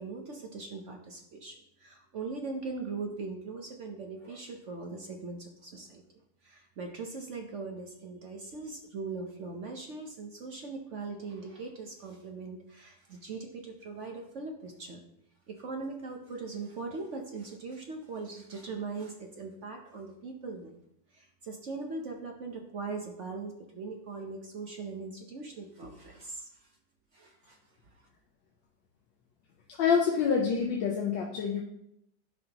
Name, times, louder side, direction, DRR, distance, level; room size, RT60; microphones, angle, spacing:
voice 1, 0.0-6.0 6.4-15.0 15.5-20.8 21.1-26.7 27.1-27.6, right 4 dB, 55° right, 2 dB, 0.9 m, -40 dB
voice 2, 29.8-31.6, left 6 dB, 80° left, -1 dB, 1.6 m, -26 dB
10.5 x 5.6 x 2.9 m, 0.79 s
omnidirectional pair, 2.0 m